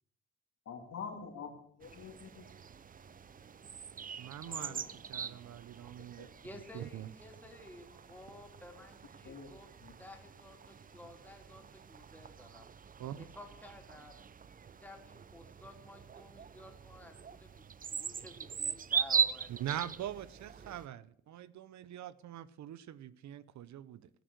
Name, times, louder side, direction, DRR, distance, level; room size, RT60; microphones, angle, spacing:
voice 1, 0.6-1.5 1.8-2.5 4.4-4.9 6.2-6.3 9.2-9.5 9.8-9.9, left 6 dB, 55° left, 4 dB, 3.1 m, -46 dB
sound 1, 1.8-20.9, right 7 dB, 30° right, 0.6 m, -41 dB
voice 2, 4.2-6.3 6.7-7.1 13.0-13.3 19.5-24.1, right 11 dB, 70° right, 17 dB, 0.8 m, -43 dB
voice 3, 6.4-9.7 10.0-12.6 13.2-14.1 14.8-17.6 17.9-19.7, left 1 dB, 5° left, 2 dB, 3.5 m, -53 dB
18.5 x 6.4 x 8.1 m, 0.64 s
cardioid pair, 90°, 30 cm